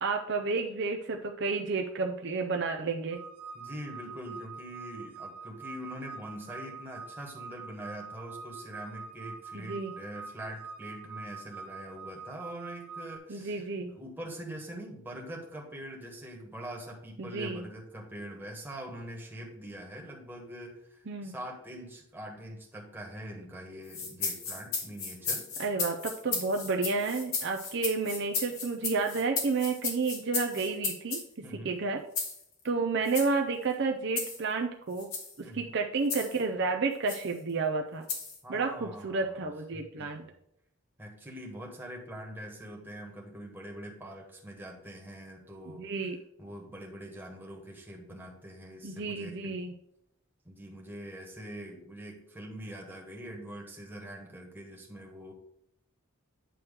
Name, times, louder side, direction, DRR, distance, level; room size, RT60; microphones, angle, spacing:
voice 1, 0.0-3.2 9.5-9.9 13.3-13.9 17.2-17.6 21.1-21.3 25.6-31.2 31.6-32.0 32.6-35.1 35.4-38.1 38.5-40.2 45.8-46.2 48.8-49.7, right 4 dB, 50° right, 3 dB, 0.5 m, -31 dB
sound 1, 3.1-13.2, right 5 dB, 90° right, 1.0 m, -45 dB
voice 2, 3.5-25.5 31.4-31.8 35.4-35.7 38.4-39.4 39.7-40.3 41.0-45.9 46.4-49.6 50.4-55.3, right 1 dB, 10° right, -1 dB, 1.4 m, -43 dB
sound 2, 23.9-31.3 32.2-32.4 33.1-33.3 34.2-34.4 35.0-35.3 36.1-36.4 37.1-37.3 38.1-38.4, left 5 dB, 70° left, 1.6 m, -34 dB
9.2 x 3.1 x 6.4 m, 0.75 s
head